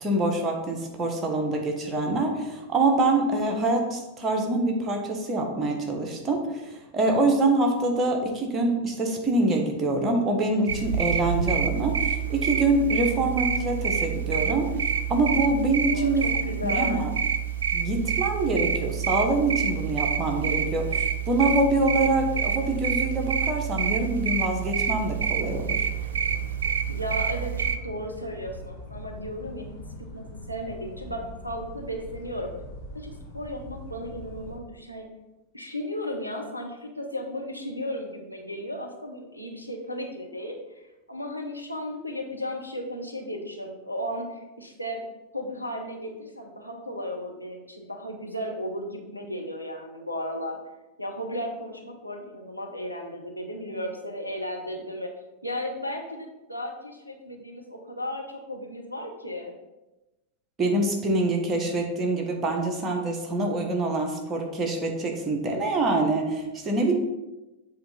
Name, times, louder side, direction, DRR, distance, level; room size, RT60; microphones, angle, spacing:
voice 1, 0.0-14.7 15.1-16.3 16.6-17.1 17.7-25.9 60.6-66.9, right 2 dB, 20° right, 1 dB, 1.3 m, -25 dB
sound 1, 10.7-27.8, right 8 dB, 65° right, 0.4 m, -27 dB
voice 2, 15.8-17.1 26.9-29.8 30.1-32.5 32.9-35.1 35.5-40.6 41.1-45.0 45.3-50.6 51.0-55.1 55.4-59.5, equal, 85° left, 1 dB, 0.9 m, -35 dB
sound 2, 24.7-34.6, left 1 dB, 40° left, 1.4 m, -42 dB
7.5 x 3.9 x 4.3 m, 1.0 s
figure-of-eight pair, 90°, 0 cm